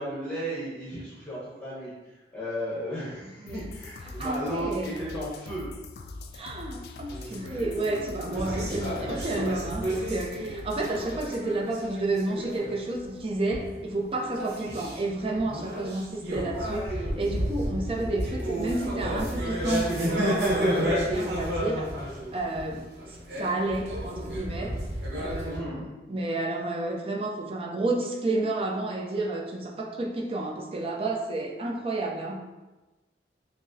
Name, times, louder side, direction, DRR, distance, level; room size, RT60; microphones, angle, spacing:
voice 1, 0.0-5.7 10.4-10.5 10.8-10.9 25.5-25.9, equal, 5° left, -10 dB, 0.9 m, -35 dB
sound 1, 3.5-11.5, left 3 dB, 60° left, 0.3 m, -43 dB
voice 2, 4.1-5.0 6.3-21.9 22.3-24.8 25.2-32.5, right 2 dB, 30° right, -1 dB, 0.5 m, -31 dB
sound 2, 7.1-13.1 13.4-13.9 14.2-25.6, equal, 65° right, 0.9 m, -31 dB
5.9 x 2.0 x 2.7 m, 1.1 s
head